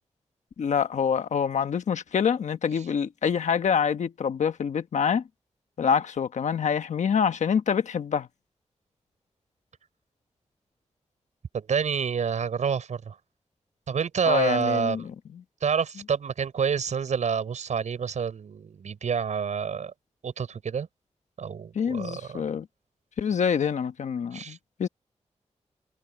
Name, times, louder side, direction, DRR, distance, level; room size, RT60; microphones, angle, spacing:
voice 1, 0.6-5.2 5.8-8.3 14.3-15.4 21.7-22.7 23.2-24.9, left 7 dB, 90° left, 1.2 m, -26 dB
voice 2, 11.5-13.1 13.9-15.1 15.6-19.9 20.2-20.9 21.4-22.4 24.3-24.6, right 6 dB, 90° right, 6.7 m, -28 dB
cardioid pair, 60°, 12 cm